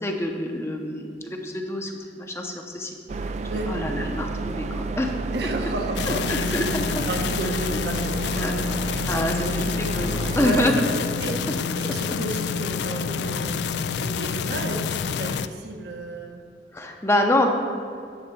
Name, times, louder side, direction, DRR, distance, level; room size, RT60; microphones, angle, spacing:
voice 1, 0.0-3.3 3.7-5.1 6.1-7.0 8.3-8.5 9.1-10.8 16.7-17.5, left 1 dB, 15° left, 3 dB, 0.7 m, -26 dB
sound 1, 3.1-10.7, right 3 dB, 40° right, 0.3 m, -31 dB
voice 2, 5.3-6.6 7.1-8.5 9.4-9.7 10.3-13.6 14.0-16.4, right 1 dB, 70° right, 2 dB, 1.1 m, -33 dB
sound 2, 6.0-15.5, left 6 dB, 70° left, 0.3 m, -28 dB
10.0 x 4.2 x 6.9 m, 2.4 s
head